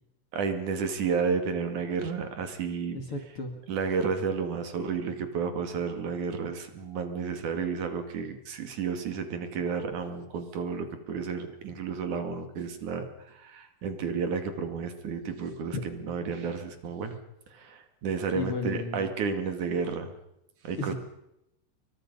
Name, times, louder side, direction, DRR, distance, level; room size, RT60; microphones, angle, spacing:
voice 1, 0.3-3.0 3.7-17.2 17.5-20.1 20.6-20.9, right 5 dB, 50° right, 7 dB, 3.0 m, -31 dB
voice 2, 2.9-3.5 18.3-19.1 20.8-20.9, left 3 dB, 40° left, 5 dB, 2.1 m, -33 dB
29.0 x 23.5 x 5.5 m, 0.83 s
omnidirectional pair, 5.6 m